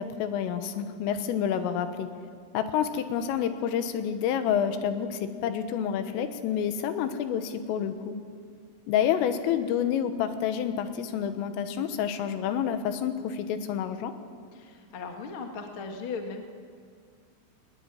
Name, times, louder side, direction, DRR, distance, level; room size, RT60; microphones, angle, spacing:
voice 1, 0.0-2.1 2.5-8.2 8.9-14.1, left 8 dB, 85° left, 9 dB, 3.8 m, -28 dB
voice 2, 14.5-16.4, left 4 dB, 65° left, 3 dB, 1.2 m, -37 dB
20.0 x 19.5 x 9.0 m, 2.1 s
omnidirectional pair, 5.8 m